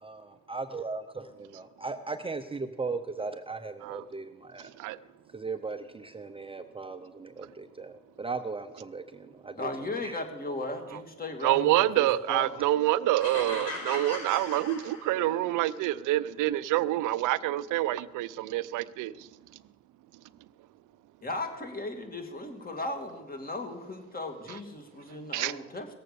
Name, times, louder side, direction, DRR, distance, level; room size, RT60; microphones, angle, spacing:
voice 1, 0.0-4.7 5.3-10.2, right 4 dB, 20° right, 0.7 m, -38 dB
voice 2, 9.6-12.5 21.2-25.9, left 2 dB, 30° left, 2.4 m, -36 dB
voice 3, 11.4-19.1 25.3-25.5, right 15 dB, 90° right, 0.5 m, -27 dB
sound 1, 13.2-15.5, left 2 dB, 55° left, 5.0 m, -38 dB
17.0 x 7.6 x 6.8 m
cardioid pair, 90°, 30 cm